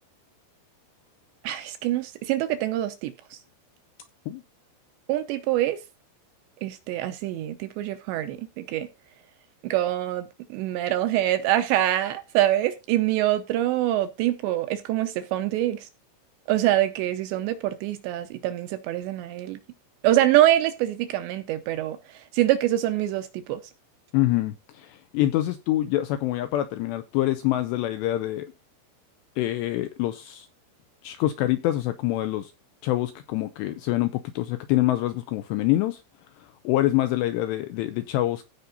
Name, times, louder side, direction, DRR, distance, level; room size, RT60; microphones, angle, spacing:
voice 1, 1.4-3.1 5.1-5.8 6.6-8.9 9.6-15.9 16.5-19.6 20.0-22.0 22.3-23.6, right 13 dB, 80° right, 2.7 m, -25 dB
voice 2, 24.1-28.5 29.4-30.5 31.0-32.5 32.8-36.0 36.6-38.5, left 15 dB, 85° left, 2.5 m, -25 dB
15.5 x 5.3 x 4.1 m
omnidirectional pair, 5.7 m